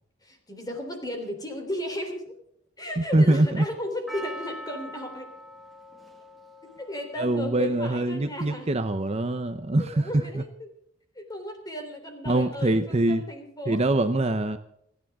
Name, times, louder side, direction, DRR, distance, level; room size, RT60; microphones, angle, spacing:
voice 1, 0.2-2.3 2.8-5.3 6.8-8.7 9.8-10.7 11.2-14.0, left 1 dB, 20° left, 4 dB, 3.4 m, -35 dB
voice 2, 3.1-3.6 7.2-10.4 12.3-13.2 13.7-14.6, right 2 dB, 30° right, 10 dB, 0.7 m, -24 dB
Percussion, 4.1-8.4 9.1-9.2, equal, ahead, 1.9 m, -43 dB
29.5 x 10.5 x 3.6 m, 0.72 s
head